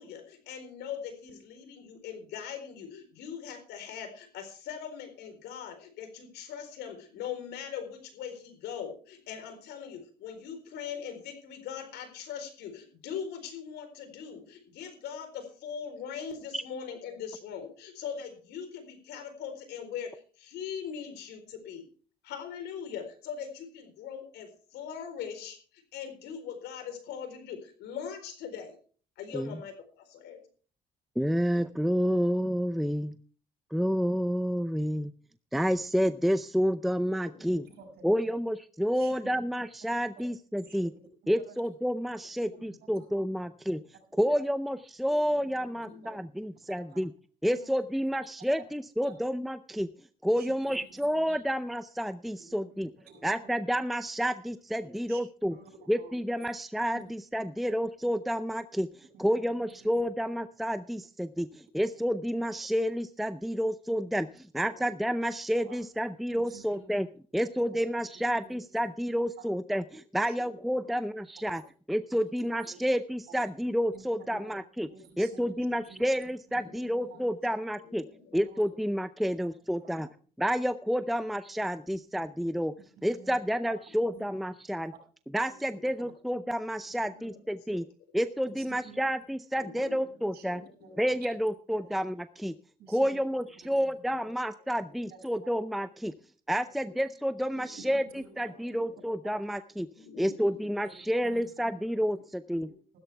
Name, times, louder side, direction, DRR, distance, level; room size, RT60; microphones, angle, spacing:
voice 1, 0.0-21.9 22.2-28.8 29.2-30.4 37.4-37.7 42.5-42.8 45.3-46.1 70.7-70.8 76.6-77.2 77.8-78.4 86.9-87.4 87.7-87.8 89.5-90.1 90.4-91.0 97.5-97.9 98.6-99.0 100.0-100.6, left 7 dB, 80° left, 8 dB, 4.1 m, -41 dB
voice 2, 31.2-33.1 33.7-35.1 35.5-37.7 38.0-40.9 41.3-43.8 44.2-47.1 47.4-49.9 50.2-52.9 53.2-55.6 55.9-58.9 59.2-67.1 67.3-69.8 70.1-71.6 71.9-74.9 75.2-78.1 78.3-80.1 80.4-82.7 83.0-84.9 85.3-87.9 88.1-90.6 91.0-92.5 92.9-96.1 96.5-99.9 100.2-102.7, equal, ahead, 12 dB, 0.5 m, -29 dB
voice 3, 37.7-38.3 38.9-39.3 40.6-40.9 41.2-41.6 42.5-43.1 44.1-44.4 45.1-45.3 46.0-46.1 46.7-47.0 47.4-47.9 48.6-48.7 49.0-49.3 50.3-51.4 52.4-52.8 53.1-53.3 54.8-55.2 55.5-56.2 56.9-57.0 59.1-60.1 64.7-64.8 65.6-65.8 66.4-66.9 68.5-68.9 70.2-70.4 70.7-70.9 71.5-71.6 72.1-72.2 72.6-72.8 73.3-73.4 73.9-74.0 74.3-74.6 74.9-76.0 76.5-76.7 77.0-77.4 78.3-78.6 79.8-79.9 83.0-83.3 83.7-83.8 84.1-84.2 85.5-86.1 88.5-89.0 90.2-90.5 90.8-91.3 91.8-91.9 92.8-93.2 93.6-93.9 95.1-95.5 96.8-96.9 97.8-98.6 100.5-101.0 101.2-101.5 102.7-103.0, right 5 dB, 70° right, 5 dB, 7.4 m, -52 dB
15.5 x 13.0 x 3.4 m, 0.41 s
cardioid pair, 110°, 17 cm